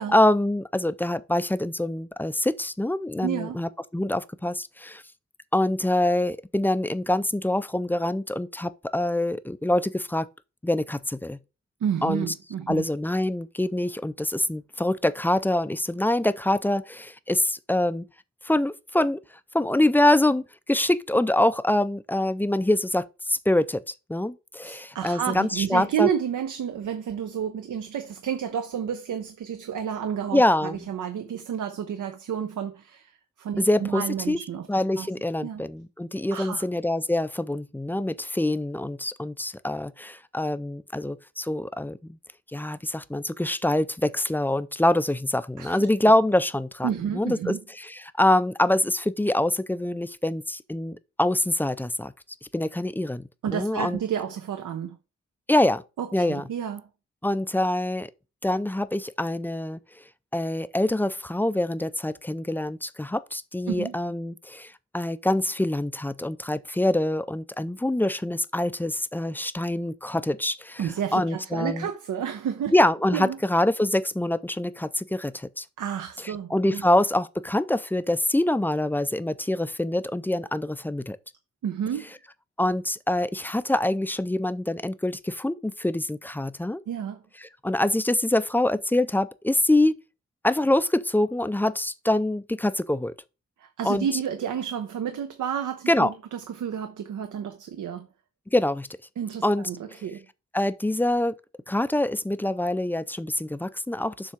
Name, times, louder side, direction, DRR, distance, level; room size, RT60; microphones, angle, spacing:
voice 1, 0.0-5.0 5.5-10.3 10.6-11.4 12.0-12.3 12.7-18.1 18.4-19.2 19.5-26.1 30.3-30.9 33.6-34.4 34.7-42.2 42.5-52.1 52.5-54.0 55.5-55.8 56.1-56.4 57.2-58.1 58.4-59.8 60.3-71.9 72.7-75.7 76.2-81.2 82.6-86.8 87.4-90.0 90.4-93.1 93.8-94.1 95.9-96.1 98.5-98.9 99.4-99.7 100.5-101.3 101.7-104.3, left 1 dB, 5° left, 0.3 m, -25 dB
voice 2, 3.2-3.6 11.8-12.9 24.6-33.1 33.4-34.7 35.0-35.1 35.4-35.6 36.3-36.6 45.6-45.8 46.8-47.6 53.4-55.0 56.0-56.9 63.7-63.9 70.8-72.7 73.1-73.4 75.8-76.9 81.6-82.1 86.9-87.2 93.6-98.1 99.2-100.3, right 8 dB, 85° right, 0.7 m, -30 dB
7.1 x 3.4 x 6.0 m
wide cardioid pair, 105°, 30 cm